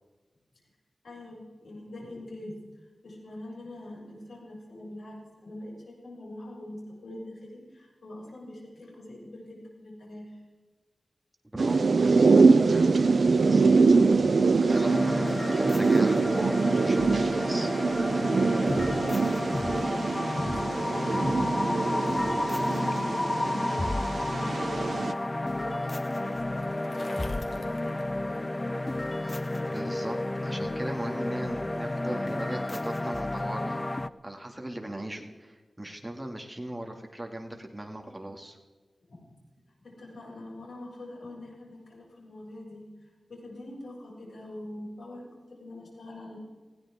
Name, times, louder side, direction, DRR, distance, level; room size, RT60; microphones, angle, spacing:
voice 1, 1.0-2.5 3.0-5.2 5.4-10.4 18.7-22.4 22.7-28.6 39.8-45.2 45.6-46.4, left 1 dB, 90° left, -4 dB, 6.8 m, -44 dB
voice 2, 11.5-13.8 14.1-17.7 29.3-29.4 29.7-38.6, right 1 dB, 15° right, 1 dB, 2.5 m, -39 dB
sound 1, 11.6-25.1, right 4 dB, 70° right, 0.7 m, -24 dB
sound 2, 14.7-34.1, left 1 dB, 25° left, 0.5 m, -31 dB
Bicycle, 24.3-28.8, left 2 dB, 70° left, 2.6 m, -49 dB
19.5 x 16.5 x 3.8 m, 1.3 s
wide cardioid pair, 85°, 0 cm